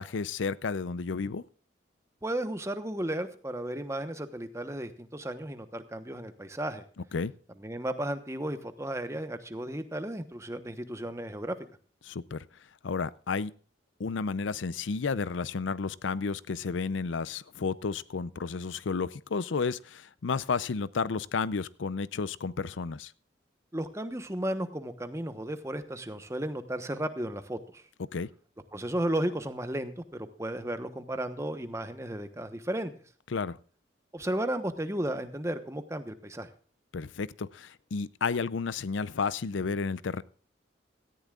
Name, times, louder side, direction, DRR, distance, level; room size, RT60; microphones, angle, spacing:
voice 1, 0.0-1.4 7.1-7.3 12.0-12.5 12.8-13.5 14.0-23.1 28.1-28.3 33.3-33.6 36.9-40.2, left 5 dB, 85° left, 18 dB, 0.5 m, -32 dB
voice 2, 2.2-6.8 7.6-11.6 23.7-27.8 28.7-32.9 34.1-36.5, right 1 dB, 15° right, 9 dB, 1.0 m, -34 dB
17.5 x 14.0 x 2.4 m, 0.43 s
head